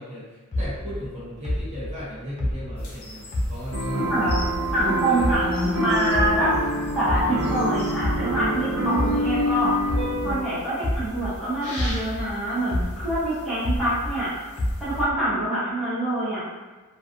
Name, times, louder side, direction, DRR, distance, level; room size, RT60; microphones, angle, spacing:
voice 1, 0.0-4.2 5.0-5.2, equal, 30° right, -10 dB, 0.8 m, -36 dB
sound 1, 0.5-3.9 4.3-6.7 7.1-11.4 11.8-14.2 14.6-15.3, left 1 dB, 30° left, 0.3 m, -29 dB
sound 2, 2.8-15.0, left 2 dB, 75° left, 0.6 m, -44 dB
sound 3, 3.7-10.4, right 1 dB, 65° right, 0.4 m, -26 dB
voice 2, 4.7-6.6 6.9-9.7 10.2-14.3 14.8-16.4, right 1 dB, ahead, -13 dB, 0.8 m, -25 dB
2.4 x 2.3 x 2.5 m, 1.2 s
head